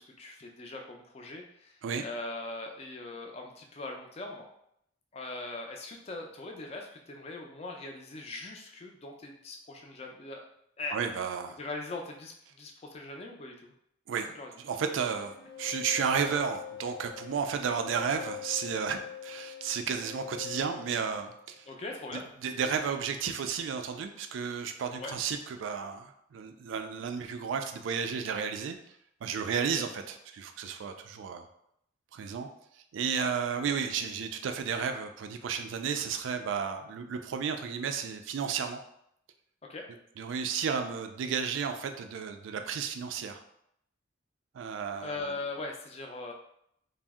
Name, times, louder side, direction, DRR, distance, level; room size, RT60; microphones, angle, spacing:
voice 1, 0.0-4.5 5.1-10.4 10.8-11.0 11.6-13.7 14.4-14.5 21.7-22.2 24.9-25.2 29.7-29.8 33.2-33.3 39.7-39.8 45.0-46.3, left 2 dB, 30° left, 2 dB, 0.4 m, -40 dB
voice 2, 10.9-11.6 14.1-14.3 14.6-21.6 22.1-28.8 29.2-31.4 32.1-32.5 32.9-38.8 40.2-43.4 44.5-45.2, right 6 dB, 70° right, 6 dB, 0.3 m, -33 dB
sound 1, 15.2-21.7, left 10 dB, 70° left, 0.7 m, -44 dB
2.6 x 2.0 x 3.5 m, 0.74 s
head